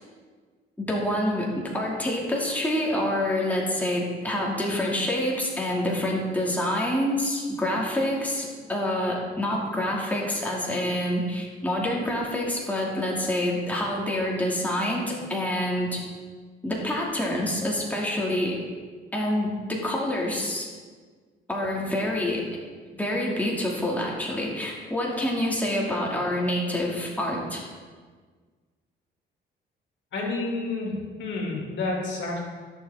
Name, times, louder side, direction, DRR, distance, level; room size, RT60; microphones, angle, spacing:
voice 1, 0.8-16.0 16.6-18.6 19.1-20.7 21.5-22.4 22.9-27.6, left 1 dB, 10° left, -3 dB, 2.5 m, -27 dB
voice 2, 30.1-30.9 31.2-32.4, left 3 dB, 65° left, -2 dB, 2.7 m, -29 dB
16.0 x 6.9 x 3.7 m, 1.5 s
cardioid pair, 90°, 20 cm